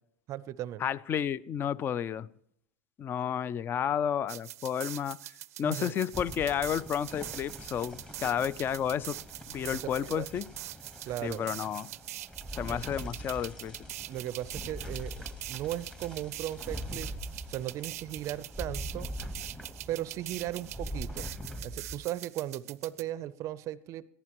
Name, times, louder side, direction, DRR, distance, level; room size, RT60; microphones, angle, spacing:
voice 1, 0.3-0.8 5.6-5.9 10.0-10.3 11.1-11.5 12.7-12.8 14.1-15.2 15.5-17.1 17.5-19.1 19.9-21.3 21.6-24.1, right 13 dB, 40° right, 17 dB, 0.5 m, -37 dB
voice 2, 0.8-2.3 3.0-5.2 5.6-9.2 9.5-10.5 11.2-11.9 12.5-13.8, left 8 dB, 25° left, 21 dB, 0.4 m, -31 dB
sound 1, 4.3-23.0, right 15 dB, 90° right, 0.5 m, -43 dB
sound 2, 6.1-22.0, equal, 10° left, 1.1 m, -43 dB
20.5 x 14.5 x 3.0 m, 0.74 s
supercardioid pair, 130°, 8 cm